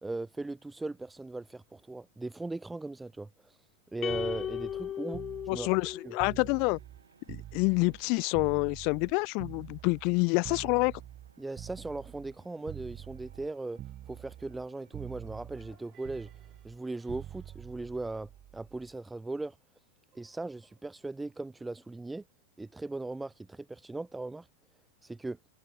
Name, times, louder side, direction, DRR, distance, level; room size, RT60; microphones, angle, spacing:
voice 1, 0.0-3.6 3.9-5.8 6.0-6.1 11.4-13.8 14.1-16.3 16.6-19.6 20.1-22.2 22.6-24.5 25.0-25.4, right 2 dB, 10° right, 1.3 m, -38 dB
sound 1, 4.0-6.5, left 10 dB, 30° left, 1.8 m, -37 dB
sound 2, 4.1-8.0 8.3-12.4 12.7-13.5 13.8-14.7 14.9-18.9 20.1-20.4, right 12 dB, 30° right, 0.9 m, -46 dB
sound 3, 4.4-16.6, right 6 dB, 70° right, 7.8 m, -64 dB
voice 2, 5.5-6.8 7.3-10.9, left 33 dB, 45° left, 0.4 m, -27 dB
figure-of-eight pair, 90°, 0 cm